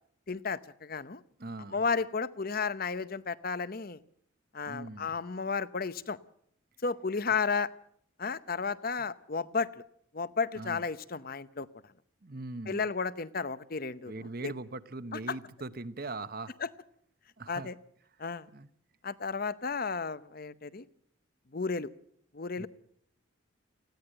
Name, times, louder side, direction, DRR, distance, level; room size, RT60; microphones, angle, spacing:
voice 1, 0.3-1.2 1.7-4.0 4.5-6.2 6.8-7.7 8.2-9.7 10.1-11.7 12.7-14.5 15.1-15.4 16.6-16.7 17.5-17.7 18.2-18.5 19.0-20.9 21.5-21.9 22.3-22.7, left 5 dB, 45° left, 16 dB, 0.8 m, -33 dB
voice 2, 1.4-1.8 4.6-5.2 9.0-9.1 10.5-10.8 12.2-12.8 14.1-16.5 17.4-17.7 18.5-18.7 22.6-22.7, right 2 dB, 45° right, 13 dB, 1.0 m, -40 dB
20.0 x 15.5 x 9.1 m, 0.68 s
head